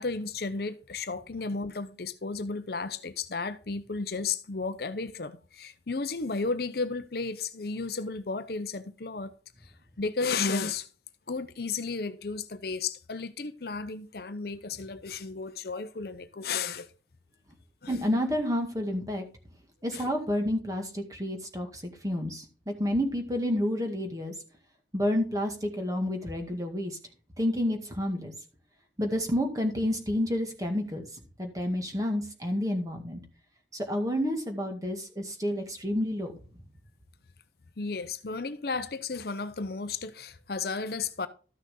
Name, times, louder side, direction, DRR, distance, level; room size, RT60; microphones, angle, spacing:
voice 1, 0.0-9.3 9.6-10.9 11.3-16.9 17.8-18.0 19.9-20.0 37.8-41.3, left 4 dB, 55° left, 0.7 m, -33 dB
voice 2, 17.9-19.3 19.8-24.3 24.9-27.0 27.4-28.3 29.0-31.1 31.4-33.2 33.7-36.3, left 1 dB, 20° right, 1.9 m, -29 dB
13.0 x 6.5 x 3.8 m
head